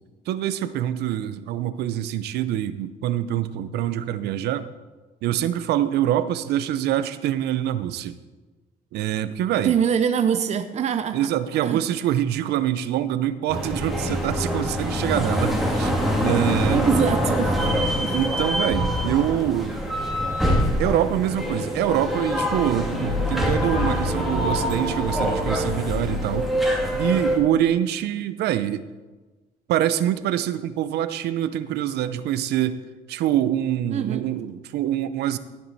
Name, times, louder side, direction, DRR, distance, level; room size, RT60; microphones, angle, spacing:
voice 1, 0.3-4.7 5.2-8.2 8.9-9.7 11.1-15.9 16.2-16.8 18.1-19.8 20.8-26.5 26.9-28.8 29.7-32.8 33.1-35.4, right 11 dB, 75° right, 13 dB, 0.7 m, -25 dB
voice 2, 9.6-11.8 16.7-18.1 33.9-34.2, right 7 dB, 40° right, 9 dB, 0.7 m, -24 dB
sound 1, 13.5-27.4, equal, ahead, 2.2 m, -24 dB
16.5 x 7.5 x 4.1 m, 1.2 s
cardioid pair, 110°, 17 cm